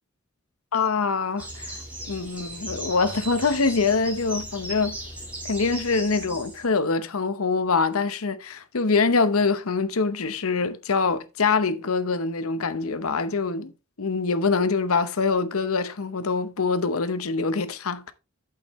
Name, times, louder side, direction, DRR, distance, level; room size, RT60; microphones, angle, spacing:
voice 1, 0.7-1.7 2.1-5.0 5.4-13.7 14.0-18.1, left 4 dB, 75° left, 0.9 m, -24 dB
sound 1, 1.4-6.6, right 1 dB, 5° right, 4.0 m, -37 dB
8.4 x 7.8 x 3.1 m
head